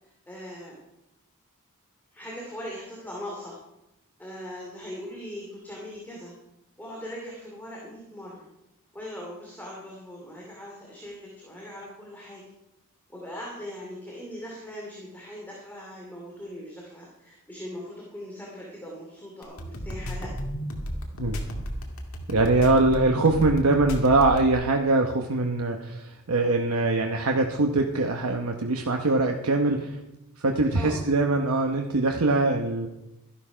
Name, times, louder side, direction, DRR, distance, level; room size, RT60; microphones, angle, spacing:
voice 1, 0.0-0.8 2.1-3.6 4.2-6.3 6.8-8.5 8.9-12.4 13.1-20.3 29.6-29.7 30.7-31.0, equal, 10° left, -3 dB, 2.6 m, -40 dB
sound 1, 19.4-24.5, equal, 70° left, 2.2 m, -33 dB
voice 2, 22.3-30.0 30.4-32.9, right 2 dB, 75° right, 3 dB, 1.0 m, -23 dB
13.0 x 11.5 x 5.0 m, 0.91 s
head